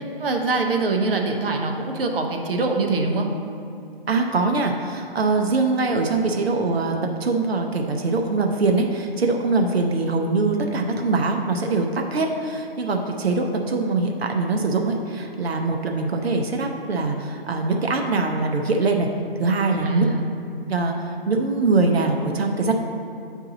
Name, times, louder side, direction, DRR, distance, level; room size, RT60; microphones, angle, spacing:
voice 1, 0.2-3.3 19.8-20.2, right 3 dB, 65° right, 3 dB, 0.9 m, -23 dB
voice 2, 4.1-19.1 19.4-20.1 20.7-22.7, right 3 dB, 90° right, 3 dB, 0.8 m, -23 dB
7.8 x 4.6 x 3.9 m, 2.6 s
hypercardioid pair, 160°, 30 cm